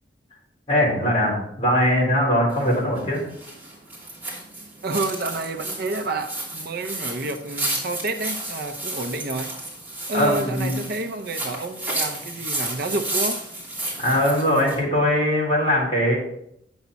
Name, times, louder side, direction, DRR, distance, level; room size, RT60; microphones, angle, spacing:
voice 1, 0.7-3.2 10.1-10.7 14.0-16.2, equal, 35° left, -4 dB, 4.0 m, -21 dB
sound 1, 2.5-14.8, right 1 dB, 10° right, 3.1 m, -32 dB
voice 2, 4.8-9.5 10.1-13.4, right 2 dB, 60° right, 6 dB, 0.7 m, -29 dB
9.3 x 7.2 x 4.1 m, 0.76 s
head